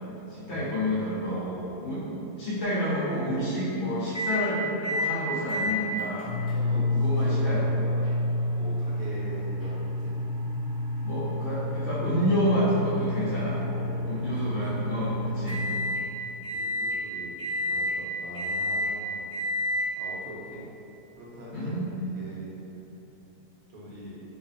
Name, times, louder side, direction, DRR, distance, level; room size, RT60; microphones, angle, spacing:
voice 1, 0.3-1.4 1.8-2.0 2.4-6.3 6.7-7.6 11.0-13.6 14.1-15.6 21.5-21.8, equal, 75° left, -9 dB, 0.5 m, -29 dB
voice 2, 1.3-1.9 6.5-10.1 13.7-14.5 16.5-19.3 20.0-20.6 21.2-22.5 23.7-24.2, right 1 dB, 65° right, -7 dB, 1.2 m, -42 dB
sound 1, 4.1-4.4 4.8-5.1 5.5-16.0 16.4-17.0 17.4-17.9 18.3-18.9 19.3-19.9, left 1 dB, 5° right, 0.8 m, -29 dB
4.6 x 2.1 x 2.5 m, 2.9 s
omnidirectional pair, 1.7 m